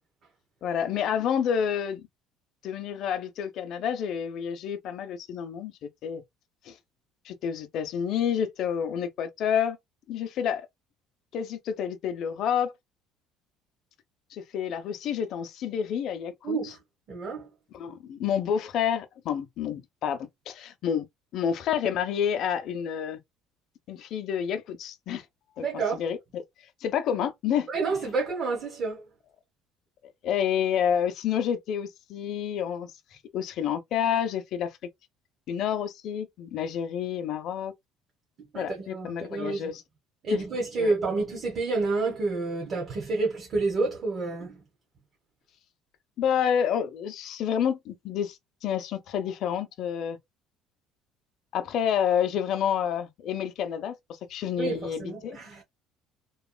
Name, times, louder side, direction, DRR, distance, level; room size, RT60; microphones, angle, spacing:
voice 1, 0.6-2.0 2.6-5.7 6.0-6.2 6.7-6.8 7.3-9.8 10.1-10.7 11.3-12.7 14.3-16.7 17.7-20.2 20.5-21.1 21.3-23.2 23.9-25.2 25.6-25.7 25.9-26.4 26.8-27.7 28.0-28.1 30.2-32.9 33.3-34.7 35.5-37.7 38.5-39.8 40.3-40.4 40.8-40.9 46.2-48.4 48.6-50.2 51.5-53.9 54.3-55.4, left 8 dB, 55° left, 0.6 m, -29 dB
voice 2, 16.4-16.8 17.1-17.5 25.6-26.0 27.7-29.0 38.5-39.7 40.2-44.6 54.6-55.6, right 3 dB, 35° right, 1.0 m, -29 dB
3.0 x 2.3 x 2.2 m
cardioid pair, 150°, 0 cm